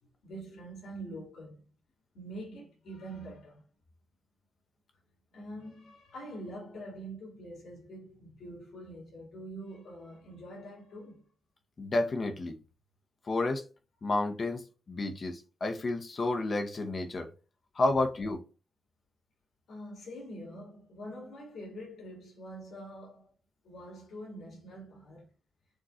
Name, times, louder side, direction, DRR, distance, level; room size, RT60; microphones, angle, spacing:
voice 1, 0.2-1.6 2.1-3.7 5.3-11.3 19.7-23.3 23.6-25.3, right 1 dB, 75° left, 2.4 m, -45 dB
voice 2, 11.8-12.6 13.3-13.6 14.0-17.3 17.8-18.4, left 2 dB, 30° left, 0.8 m, -31 dB
6.3 x 3.1 x 2.5 m
wide cardioid pair, 175°, 0 cm